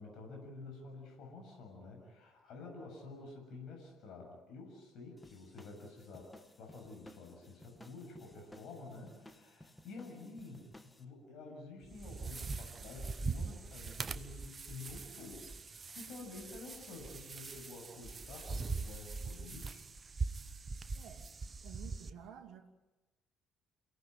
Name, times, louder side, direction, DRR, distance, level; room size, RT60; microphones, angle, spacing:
voice 1, 0.0-6.3 6.6-10.7 11.0-19.9, left 3 dB, 55° left, 1 dB, 7.3 m, -50 dB
sound 1, 5.2-11.0, left 1 dB, 10° left, 2.0 m, -58 dB
sound 2, 11.8-22.1, right 4 dB, 30° right, 1.1 m, -42 dB
voice 2, 20.9-21.3 21.6-22.7, right 9 dB, 50° right, 3 dB, 2.7 m, -52 dB
29.5 x 17.5 x 9.2 m, 1.1 s
figure-of-eight pair, 50°, 0 cm